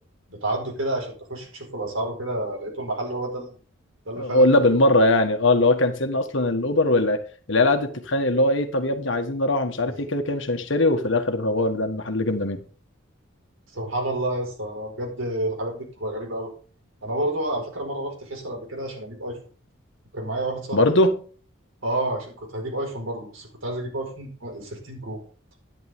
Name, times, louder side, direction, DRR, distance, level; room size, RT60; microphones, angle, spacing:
voice 1, 0.3-3.6 4.1-4.5 13.7-16.5 17.0-19.4 20.1-20.9 21.8-25.2, right 1 dB, 80° right, 4.9 m, -30 dB
voice 2, 4.2-7.2 7.5-12.6 20.7-21.2, left 2 dB, 65° left, 1.6 m, -21 dB
11.0 x 10.5 x 3.7 m
head